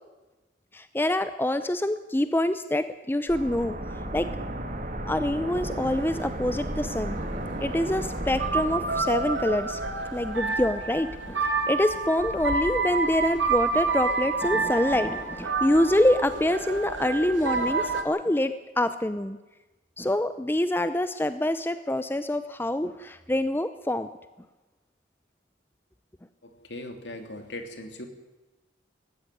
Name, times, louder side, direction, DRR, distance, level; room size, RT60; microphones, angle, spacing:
voice 1, 0.7-4.3 5.1-7.2 7.6-9.8 10.1-19.4 20.0-24.1, left 1 dB, 10° left, 11 dB, 0.6 m, -26 dB
sound 1, 3.3-12.0 12.3-12.4, right 1 dB, 40° right, 2.7 m, -35 dB
sound 2, 5.6-18.0, right 4 dB, 80° right, 2.5 m, -29 dB
voice 2, 26.4-28.1, left 1 dB, 65° left, 6 dB, 3.0 m, -39 dB
19.0 x 15.0 x 9.9 m, 1.1 s
head